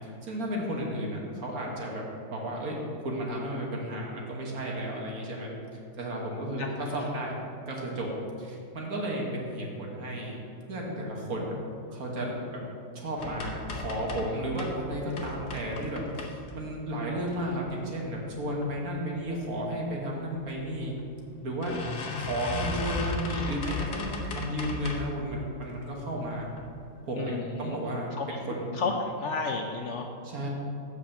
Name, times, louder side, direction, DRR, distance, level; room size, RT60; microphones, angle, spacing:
voice 1, 0.2-2.0 2.3-2.8 3.0-5.5 6.0-7.4 7.7-8.1 8.4-10.3 10.7-11.5 11.9-12.6 12.9-21.0 21.4-21.7 22.1-26.5 27.1-28.7 30.2-30.5, right 1 dB, 60° right, -2 dB, 1.7 m, -33 dB
sound 1, 13.2-14.8 15.1-16.7 17.2-17.8 18.3-18.7 19.0-19.1 19.4-19.5 20.5-20.6 21.0-21.1 21.6-25.2 25.6-26.1 26.5-26.7 27.0-27.1, left 3 dB, 85° left, 1.5 m, -36 dB
voice 2, 27.2-27.8 28.1-28.4 28.7-30.1, left 4 dB, 65° left, 3 dB, 0.7 m, -32 dB
7.1 x 5.2 x 7.0 m, 2.6 s
omnidirectional pair, 1.7 m